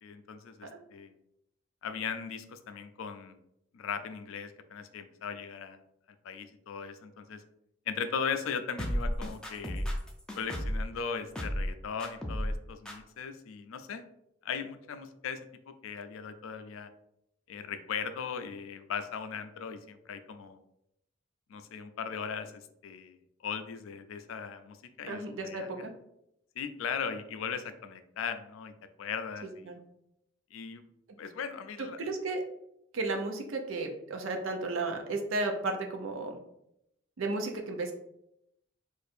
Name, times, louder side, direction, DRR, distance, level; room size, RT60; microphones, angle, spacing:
voice 1, 0.0-1.1 1.8-3.4 3.7-5.8 6.2-7.4 7.9-9.9 10.4-14.0 14.4-15.4 15.7-16.9 17.5-20.6 21.5-23.2 23.4-25.8 26.6-28.7 29.0-29.8 30.5-30.8 31.2-32.0, left 6 dB, 90° left, 9 dB, 0.4 m, -38 dB
sound 1, 8.8-10.9 11.4-11.7 12.0-12.6 12.9-13.0, equal, 5° left, 0.3 m, -32 dB
voice 2, 25.1-25.9 29.6-29.8 31.8-32.4 32.9-36.4 37.2-37.9, right 2 dB, 85° right, 3 dB, 0.6 m, -33 dB
2.5 x 2.5 x 4.1 m, 0.80 s
head